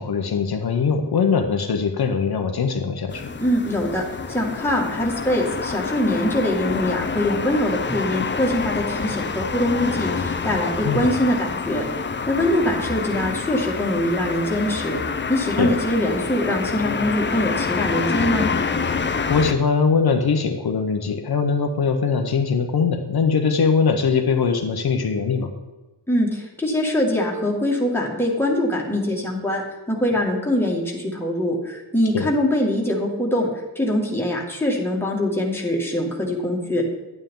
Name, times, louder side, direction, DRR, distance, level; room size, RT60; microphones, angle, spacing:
voice 1, 0.0-3.3 10.8-11.1 15.6-15.7 19.3-25.5 32.1-32.3, left 5 dB, 60° left, 5 dB, 0.8 m, -21 dB
sound 1, 3.1-19.5, left 5 dB, 30° left, 0.5 m, -27 dB
voice 2, 3.4-4.0 4.3-11.8 12.3-15.0 15.3-18.5 26.1-29.6 29.9-33.5 33.8-36.8, left 1 dB, 5° left, -2 dB, 1.9 m, -23 dB
11.0 x 9.1 x 3.7 m, 1.2 s
wide cardioid pair, 145°, 41 cm